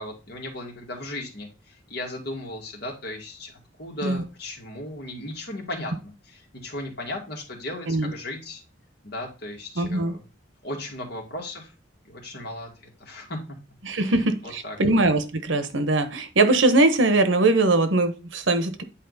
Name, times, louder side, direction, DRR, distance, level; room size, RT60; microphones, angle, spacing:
voice 1, 0.0-8.6 9.0-10.2 10.6-11.7 12.0-13.4 14.1-14.8, left 1 dB, 60° left, 2.3 m, -36 dB
voice 2, 9.8-10.1 13.8-18.8, right 2 dB, 90° right, 1.1 m, -21 dB
9.3 x 4.3 x 4.1 m
head